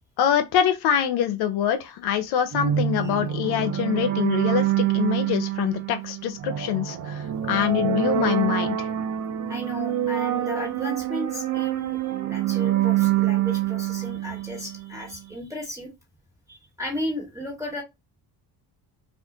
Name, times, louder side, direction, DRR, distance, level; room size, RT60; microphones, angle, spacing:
voice 1, 0.2-8.9, left 9 dB, 70° left, 0.6 m, -25 dB
sound 1, 2.5-15.0, right 11 dB, 50° right, 0.5 m, -26 dB
voice 2, 9.5-15.9 16.5-17.8, left 1 dB, 5° right, 1.5 m, -34 dB
2.4 x 2.4 x 3.7 m
cardioid pair, 95°, 40 cm